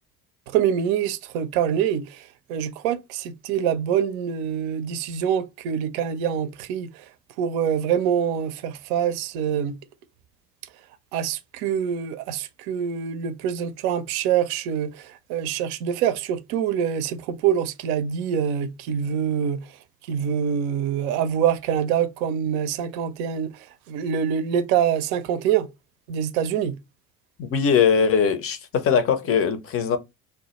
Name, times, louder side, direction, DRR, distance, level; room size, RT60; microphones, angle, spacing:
voice 1, 0.5-7.0 7.4-9.8 11.1-19.6 20.1-25.7 26.1-26.7, right 8 dB, 65° right, 0.5 m, -25 dB
voice 2, 27.4-30.0, left 6 dB, 30° left, 0.5 m, -21 dB
2.1 x 2.0 x 2.8 m
figure-of-eight pair, 55°, 46 cm